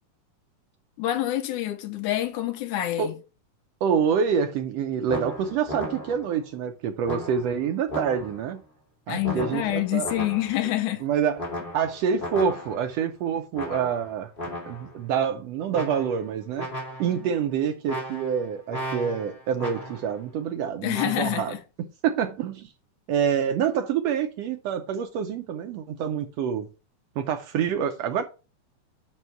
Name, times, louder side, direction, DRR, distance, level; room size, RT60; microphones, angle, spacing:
voice 1, 1.0-3.1 9.1-11.0 17.1-17.2 20.8-21.6, left 14 dB, 75° left, 2.3 m, -27 dB
voice 2, 3.8-8.6 9.1-10.1 11.0-11.4 11.7-16.7 17.0-21.6 22.0-22.7 23.1-26.7 27.2-28.2, right 7 dB, 80° right, 1.4 m, -27 dB
sound 1, 5.1-6.4 7.0-8.5 9.2-10.7 11.4-13.0 13.5-15.0 15.7-16.3 16.6-17.3 17.9-20.2 20.9-21.3, equal, 20° left, 1.6 m, -36 dB
5.5 x 5.4 x 4.5 m
omnidirectional pair, 3.6 m